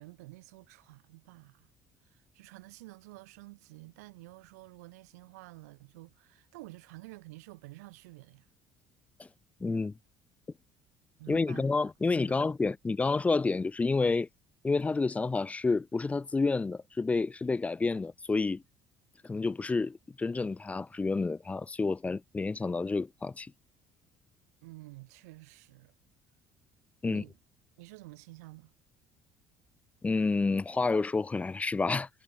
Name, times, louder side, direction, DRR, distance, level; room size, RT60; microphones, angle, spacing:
voice 1, 0.0-1.7 2.0-8.5 11.2-11.7 12.3-12.5 24.6-25.9 27.0-27.4 27.8-28.7, right 22 dB, 65° right, 0.6 m, -50 dB
voice 2, 9.6-9.9 11.3-14.3 14.6-18.6 19.2-23.5 27.0-27.2 30.0-32.1, left 3 dB, 15° left, 0.4 m, -29 dB
figure-of-eight pair, 55°, 9 cm